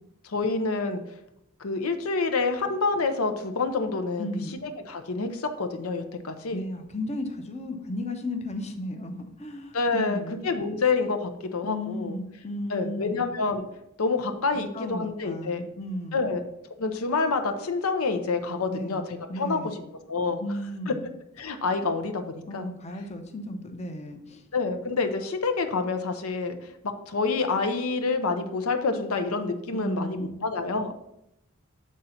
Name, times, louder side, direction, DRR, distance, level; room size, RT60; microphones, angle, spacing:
voice 1, 0.2-1.0 1.6-4.3 4.6-6.6 9.7-12.1 12.7-13.6 14.0-15.6 16.1-16.4 16.8-19.0 19.4-19.6 20.1-20.4 21.4-22.7 24.5-26.6 26.8-30.9, left 4 dB, 80° left, 7 dB, 0.7 m, -27 dB
voice 2, 4.2-4.6 6.5-10.4 11.6-13.3 14.5-16.3 18.7-19.0 19.3-19.8 20.4-21.1 21.7-21.8 22.5-24.4 29.7-30.4, left 1 dB, 30° left, 5 dB, 0.8 m, -34 dB
7.4 x 3.9 x 5.7 m, 0.82 s
head